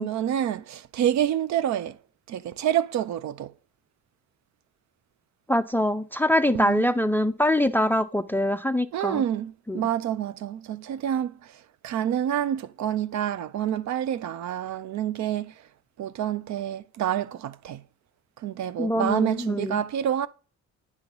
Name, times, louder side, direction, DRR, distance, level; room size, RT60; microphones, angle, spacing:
voice 1, 0.0-2.0 2.3-3.5 6.5-6.9 8.9-15.5 16.0-17.8 18.4-20.3, right 10 dB, 65° right, 0.5 m, -28 dB
voice 2, 5.5-9.2 9.7-9.8 18.8-19.8, left 1 dB, 5° left, 0.3 m, -24 dB
9.6 x 3.8 x 3.0 m
cardioid pair, 90°, 30 cm